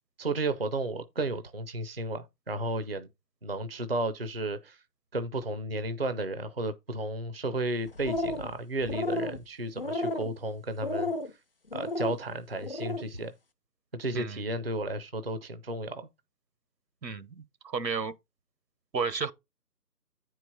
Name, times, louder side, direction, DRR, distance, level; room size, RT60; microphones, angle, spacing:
voice 1, 0.2-3.1 3.4-4.8 5.1-11.1 11.7-13.3 13.9-16.1, right 2 dB, 40° right, 0.5 m, -33 dB
sound 1, 7.9-8.5 8.8-9.4 9.8-10.3 10.8-11.3 11.7-12.2 12.6-13.0, left 2 dB, 35° left, 0.7 m, -32 dB
voice 2, 17.0-18.1 18.9-19.3, right 5 dB, 90° right, 1.1 m, -32 dB
9.2 x 4.6 x 4.1 m
figure-of-eight pair, 160°, 49 cm